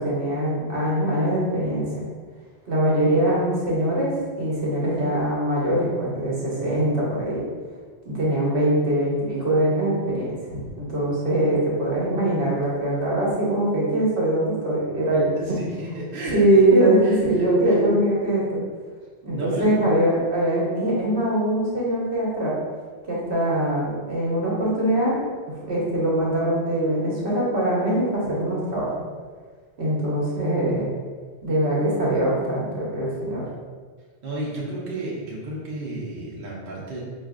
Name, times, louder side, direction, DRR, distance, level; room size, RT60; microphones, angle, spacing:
voice 1, 0.0-2.0 2.7-7.4 8.0-10.3 10.8-15.6 16.3-18.6 19.2-22.5 23.0-25.1 25.7-28.9 29.8-30.9 31.4-33.4, right 1 dB, 75° right, -5 dB, 1.2 m, -22 dB
voice 2, 15.5-16.4 17.0-17.7 19.3-19.8 34.2-37.0, right 1 dB, 60° right, -5 dB, 0.9 m, -32 dB
4.8 x 2.5 x 2.4 m, 1.5 s
omnidirectional pair, 1.1 m